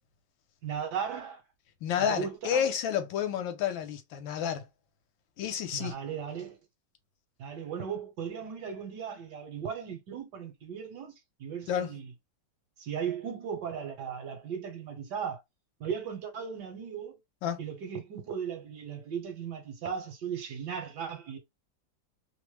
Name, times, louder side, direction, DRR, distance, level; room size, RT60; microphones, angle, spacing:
voice 1, 0.6-1.4 2.0-2.7 5.7-6.6 7.4-11.1 11.4-12.1 12.8-15.4 15.8-17.2 17.6-21.4, right 7 dB, 65° right, 1.3 m, -37 dB
voice 2, 1.8-4.7 5.4-6.0 11.7-12.0 17.4-17.6, left 8 dB, 80° left, 1.3 m, -30 dB
3.2 x 2.0 x 3.1 m
omnidirectional pair, 2.1 m